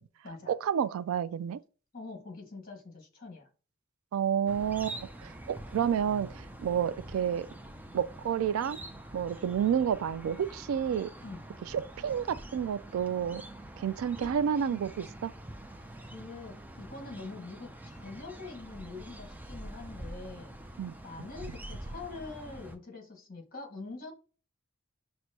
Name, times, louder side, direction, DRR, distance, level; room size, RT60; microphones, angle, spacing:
voice 1, 0.5-1.6 4.1-7.5 7.9-8.8 9.1-11.1 11.7-13.4 13.8-15.3 20.8-20.9, right 8 dB, 85° right, 0.3 m, -30 dB
voice 2, 1.9-3.5 11.2-11.5 14.2-14.8 16.1-20.5 21.0-24.1, left 3 dB, 45° left, 1.6 m, -44 dB
sound 1, 4.5-22.8, right 1 dB, 10° right, 0.4 m, -46 dB
6.0 x 2.1 x 2.7 m
head